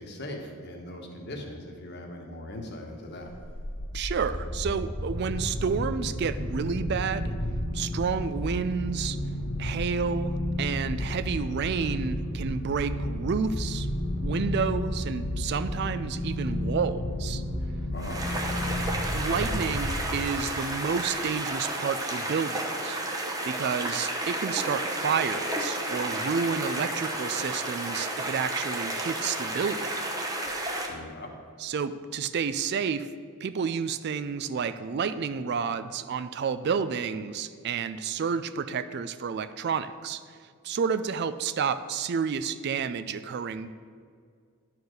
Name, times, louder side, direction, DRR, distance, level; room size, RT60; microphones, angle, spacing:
voice 1, 0.0-3.3 17.9-18.6 30.9-31.3, left 1 dB, 50° left, 2 dB, 1.3 m, -40 dB
sound 1, 3.2-20.6, left 1 dB, 90° left, 1.6 m, -32 dB
voice 2, 3.9-7.3 7.7-9.2 9.6-10.3 10.6-13.9 14.2-17.4 19.1-23.0 23.4-29.9 31.6-33.1 33.4-43.7, right 6 dB, 50° right, 13 dB, 0.3 m, -30 dB
sound 2, 18.0-30.9, right 1 dB, 15° right, 0.8 m, -32 dB
11.0 x 4.8 x 6.3 m, 2.1 s
head